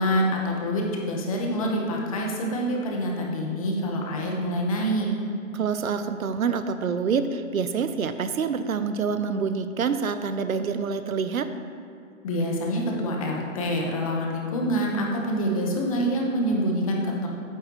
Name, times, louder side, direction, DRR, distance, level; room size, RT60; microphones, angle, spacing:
voice 1, 0.0-5.1 12.2-17.3, equal, 25° left, -1 dB, 1.1 m, -26 dB
voice 2, 5.5-11.5, right 5 dB, 85° right, 10 dB, 0.8 m, -27 dB
14.0 x 9.5 x 3.0 m, 2.4 s
hypercardioid pair, 160°, 41 cm